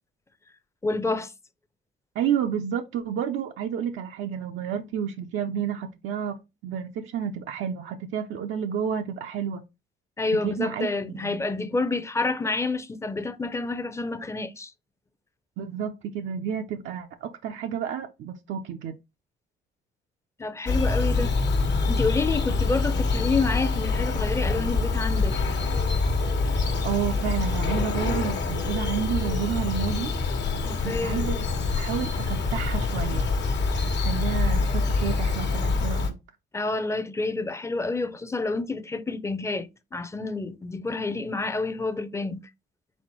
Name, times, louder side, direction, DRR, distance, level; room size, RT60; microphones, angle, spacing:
voice 1, 0.8-1.3 10.2-14.7 20.4-21.3 21.9-25.4 30.6-31.2 36.5-42.5, left 3 dB, 15° left, 0.5 m, -28 dB
voice 2, 2.2-6.4 6.6-9.6 10.4-11.4 15.6-18.9 26.8-30.1 30.8-31.4 31.8-33.3 34.0-36.1, right 8 dB, 75° right, 0.5 m, -30 dB
Bird vocalization bird call bird song, 20.7-36.1, left 3 dB, 60° left, 1.1 m, -25 dB
4.2 x 4.0 x 3.0 m
cardioid pair, 90°, 20 cm